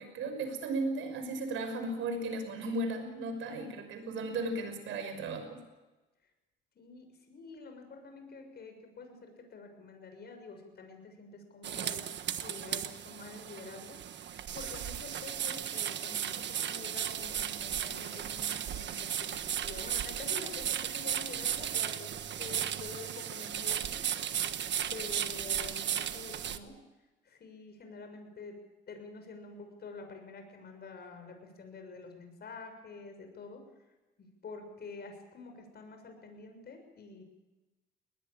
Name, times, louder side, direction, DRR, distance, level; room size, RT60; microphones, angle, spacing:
voice 1, 0.0-5.6, right 2 dB, 85° right, 7 dB, 5.9 m, -35 dB
voice 2, 6.7-12.1 12.4-19.4 19.6-24.5 24.9-26.8 27.2-28.6 28.9-33.6 34.2-37.2, left 4 dB, 55° left, 5 dB, 6.7 m, -48 dB
sound 1, 11.6-26.6, right 9 dB, 65° right, 1.4 m, -35 dB
21.5 x 19.5 x 8.9 m, 1.1 s
cardioid pair, 90°, 20 cm